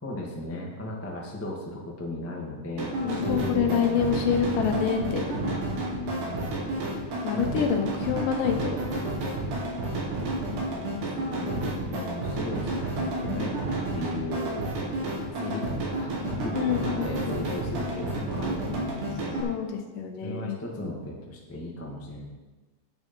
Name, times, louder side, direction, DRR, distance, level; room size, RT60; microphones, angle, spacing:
voice 1, 0.0-4.2 6.0-6.5 7.3-7.7 10.7-10.9 11.2-13.5 13.9-14.6 15.2-19.5 20.2-22.3, left 1 dB, 15° left, -3 dB, 0.5 m, -36 dB
sound 1, 2.8-19.4, right 1 dB, 60° right, 3.3 m, -30 dB
voice 2, 3.0-5.6 7.2-8.8 16.5-17.5 19.4-20.6, left 8 dB, 70° left, 4 dB, 2.3 m, -27 dB
9.5 x 9.0 x 5.4 m, 1.2 s
omnidirectional pair, 4.2 m